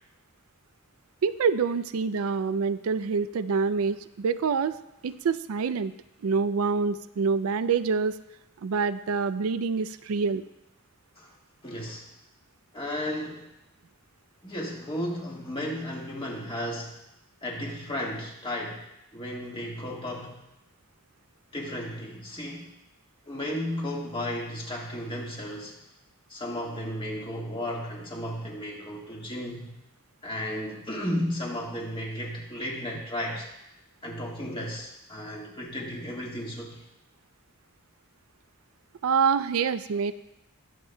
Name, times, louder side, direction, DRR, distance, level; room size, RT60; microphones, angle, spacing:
voice 1, 1.2-4.8 5.0-5.9 6.2-8.2 8.6-10.4 39.0-40.1, right 5 dB, 85° right, 13 dB, 0.4 m, -26 dB
voice 2, 11.6-12.1 12.7-13.5 14.4-16.9 17.4-18.8 19.1-20.4 21.5-22.7 23.3-25.8 26.3-29.7 30.2-33.5 34.0-36.8, equal, 25° left, -2 dB, 1.6 m, -34 dB
20.0 x 7.2 x 2.2 m, 0.87 s
head